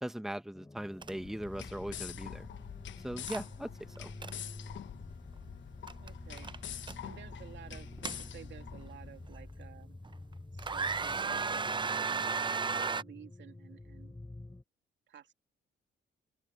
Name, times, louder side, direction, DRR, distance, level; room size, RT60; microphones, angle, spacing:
voice 1, 0.0-2.5 3.0-4.1, right 1 dB, ahead, 1.2 m, -39 dB
sound 1, 0.5-14.6, left 2 dB, 15° left, 3.5 m, -49 dB
sound 2, 1.0-1.1 1.4-1.6 3.3-3.4 3.9-4.3 5.9-6.1 6.4-7.0 7.7-8.7 9.3-9.4 10.0-10.3 10.6-13.0, right 5 dB, 25° right, 0.6 m, -34 dB
sound 3, 1.1-9.3, left 11 dB, 70° left, 1.1 m, -46 dB
voice 2, 6.0-6.5 7.0-10.0 10.5-12.3 12.8-14.2 15.1-15.3, right 9 dB, 65° right, 2.7 m, -53 dB
open air
cardioid pair, 90°, 20 cm